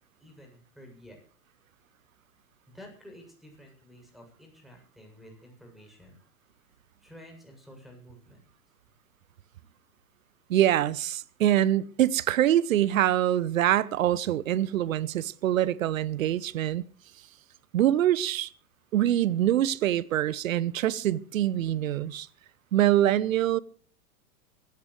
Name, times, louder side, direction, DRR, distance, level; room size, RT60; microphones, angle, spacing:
voice 1, 0.2-1.2 2.7-6.2 6.7-8.4, equal, ahead, 7.9 m, -51 dB
voice 2, 10.5-16.8 17.7-18.5 18.9-22.3 22.7-23.6, right 12 dB, 65° right, 1.0 m, -24 dB
24.0 x 15.5 x 3.3 m
figure-of-eight pair, 95°, 44 cm